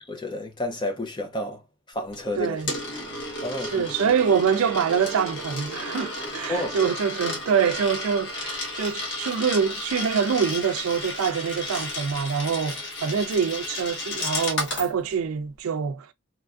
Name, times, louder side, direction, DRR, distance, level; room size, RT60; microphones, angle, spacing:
voice 1, 0.0-1.6 1.9-2.6 3.4-3.9 6.5-6.8, left 1 dB, 20° left, 0.5 m, -30 dB
Coin (dropping), 2.1-14.9, left 2 dB, 55° left, 1.1 m, -33 dB
voice 2, 2.4-2.7 3.6-16.1, right 6 dB, 85° right, 0.4 m, -25 dB
3.0 x 2.5 x 2.3 m
head